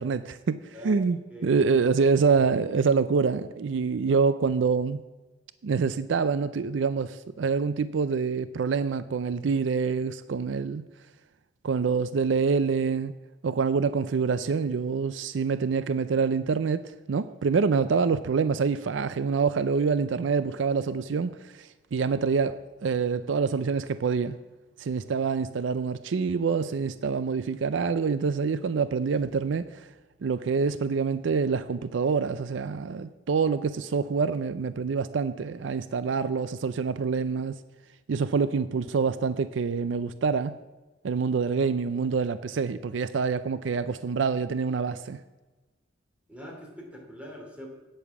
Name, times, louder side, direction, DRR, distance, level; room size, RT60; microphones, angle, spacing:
voice 1, 0.0-5.0 5.6-10.8 11.6-13.1 13.4-24.4 24.8-29.7 30.2-37.6 38.1-40.6 41.0-45.2, right 5 dB, 75° right, 0.4 m, -26 dB
voice 2, 46.3-47.7, equal, 5° right, 2.8 m, -43 dB
9.2 x 8.3 x 7.1 m
head